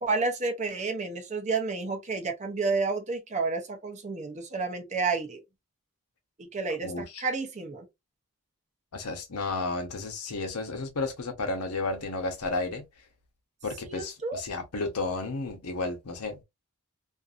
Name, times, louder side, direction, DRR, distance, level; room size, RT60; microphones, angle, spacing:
voice 1, 0.0-5.4 6.4-7.9 13.9-14.4, right 4 dB, 30° right, 0.6 m, -30 dB
voice 2, 6.8-7.2 8.9-12.8 13.6-16.4, left 3 dB, 85° left, 0.9 m, -32 dB
2.6 x 2.6 x 2.4 m
head